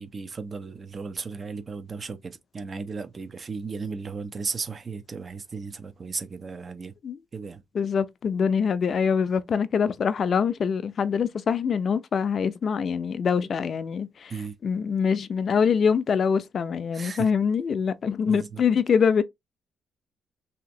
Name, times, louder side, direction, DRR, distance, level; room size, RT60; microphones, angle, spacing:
voice 1, 0.0-6.9 7.3-7.6 14.3-14.5 16.9-17.3 18.3-18.6, right 4 dB, 40° right, 0.5 m, -35 dB
voice 2, 7.7-14.3 14.6-19.2, left 6 dB, 50° left, 0.4 m, -24 dB
3.3 x 2.9 x 2.6 m
cardioid pair, 90°, 0 cm